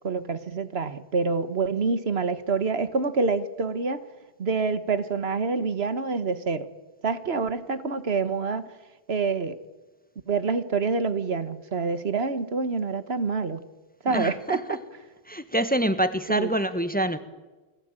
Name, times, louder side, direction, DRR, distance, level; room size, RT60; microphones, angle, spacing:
voice 1, 0.0-4.0 4.4-6.7 7.0-8.7 9.1-9.5 10.3-13.6 14.0-14.8 16.3-16.5, right 4 dB, 80° right, 12 dB, 1.7 m, -27 dB
voice 2, 14.1-14.8 15.3-17.2, right 1 dB, 10° left, 10 dB, 1.4 m, -26 dB
29.0 x 19.5 x 9.0 m, 1.2 s
omnidirectional pair, 1.0 m